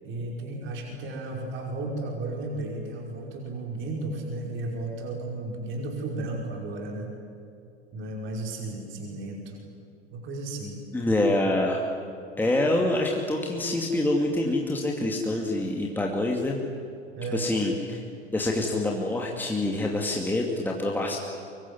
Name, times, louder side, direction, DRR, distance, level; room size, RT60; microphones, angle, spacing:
voice 1, 0.0-7.1 7.9-9.6 10.1-10.8 17.1-17.5, right 2 dB, 35° right, 0 dB, 5.4 m, -34 dB
voice 2, 10.9-11.8 12.4-16.6 17.3-18.0 18.3-21.2, left 1 dB, 5° left, 0 dB, 2.6 m, -26 dB
25.0 x 23.0 x 9.9 m, 2.6 s
figure-of-eight pair, 85°, 34 cm